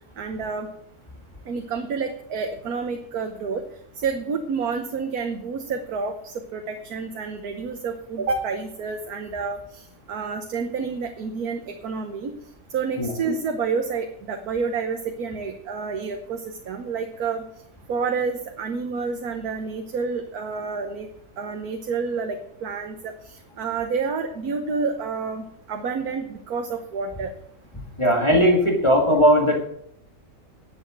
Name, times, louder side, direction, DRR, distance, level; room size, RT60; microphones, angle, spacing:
voice 1, 0.2-0.7 1.5-3.6 3.9-12.4 12.7-17.4 17.9-21.1 21.4-27.3 28.1-28.2, right 5 dB, 80° right, 5 dB, 1.5 m, -29 dB
voice 2, 28.0-29.7, equal, 20° left, 0 dB, 1.9 m, -18 dB
11.0 x 7.4 x 7.6 m, 0.71 s
omnidirectional pair, 1.6 m